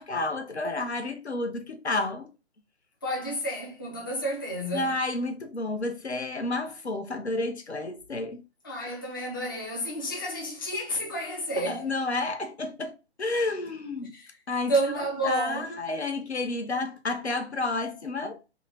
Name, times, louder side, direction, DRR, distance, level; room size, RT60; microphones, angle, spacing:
voice 1, 0.0-2.3 4.7-8.4 11.6-14.1 14.5-18.4, left 2 dB, 75° left, 0.8 m, -31 dB
voice 2, 3.0-4.9 8.6-11.9 14.1-14.3 14.7-15.8, right 1 dB, 20° left, 0.5 m, -30 dB
2.8 x 2.2 x 4.1 m
figure-of-eight pair, 140°, 34 cm